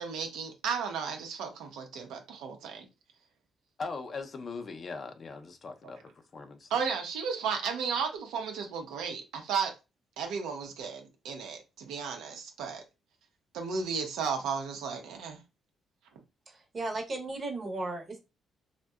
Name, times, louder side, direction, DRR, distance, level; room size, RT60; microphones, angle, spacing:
voice 1, 0.0-2.9 5.8-5.9 6.7-9.8 10.2-12.8 13.5-15.4, right 6 dB, 90° right, 0.6 m, -34 dB
voice 2, 3.8-6.7, left 4 dB, 45° left, 0.5 m, -40 dB
voice 3, 16.5-18.2, right 2 dB, 35° right, 0.8 m, -35 dB
2.6 x 2.1 x 2.2 m
cardioid pair, 90°, 0 cm